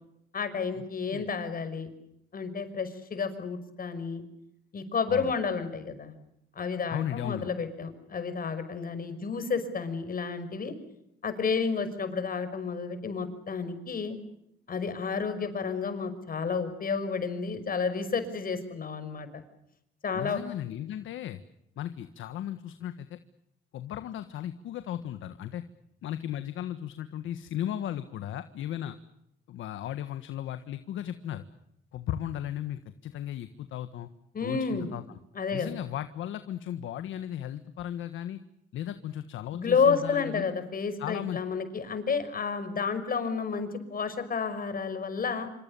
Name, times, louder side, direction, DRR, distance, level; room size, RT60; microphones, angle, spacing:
voice 1, 0.3-1.9 2.3-4.2 4.7-6.1 6.6-10.7 11.2-14.2 14.7-19.4 20.0-20.4 34.3-34.9 35.3-35.8 39.5-45.5, left 5 dB, 45° left, 10 dB, 5.8 m, -31 dB
voice 2, 6.9-7.5 20.1-21.4 21.8-23.2 23.7-25.6 26.0-29.0 29.5-31.4 31.9-34.1 34.4-35.2 35.5-38.4 38.7-40.5 41.0-41.4, left 11 dB, 80° left, 10 dB, 1.5 m, -36 dB
27.0 x 26.5 x 7.1 m, 0.80 s
cardioid pair, 90°, 20 cm